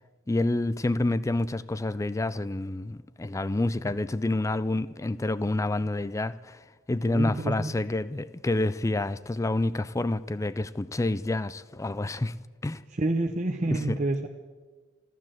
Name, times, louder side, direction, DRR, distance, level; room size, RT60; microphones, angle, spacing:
voice 1, 0.3-6.6 6.9-12.3 12.6-12.8 13.7-14.0, left 2 dB, 15° left, 0.4 m, -28 dB
voice 2, 7.1-7.7 12.9-14.3, right 2 dB, 35° right, 0.7 m, -28 dB
14.5 x 13.5 x 7.5 m
head